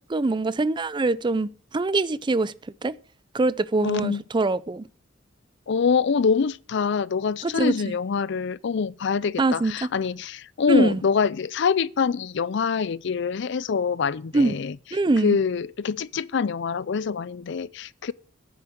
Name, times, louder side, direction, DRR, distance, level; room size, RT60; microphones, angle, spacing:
voice 1, 0.1-2.5 2.8-3.0 3.3-4.9 7.4-7.9 9.4-9.9 10.7-11.0 14.3-14.5 14.9-15.4, right 2 dB, 25° right, 0.4 m, -23 dB
voice 2, 3.8-4.2 5.7-14.8 15.2-18.1, left 5 dB, 65° left, 0.5 m, -25 dB
10.0 x 7.2 x 7.8 m
head